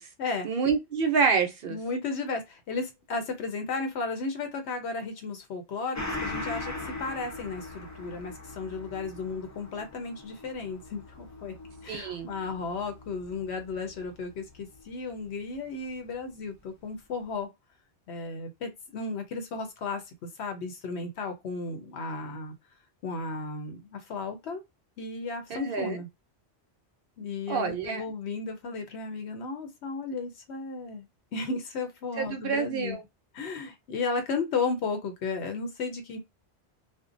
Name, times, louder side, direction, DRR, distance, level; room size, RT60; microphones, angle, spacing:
voice 1, 0.4-1.8 11.9-12.3 25.5-26.0 27.5-28.0 32.2-33.0, right 5 dB, 60° right, 0.7 m, -27 dB
voice 2, 1.7-11.5 11.8-17.5 18.1-20.0 20.4-22.5 23.0-24.6 25.0-26.1 27.2-31.0 31.3-33.0 33.3-36.2, left 4 dB, 80° left, 0.9 m, -34 dB
Gong, 5.9-14.9 15.2-15.3, left 2 dB, 20° left, 0.5 m, -41 dB
2.6 x 2.1 x 2.5 m
omnidirectional pair, 1.1 m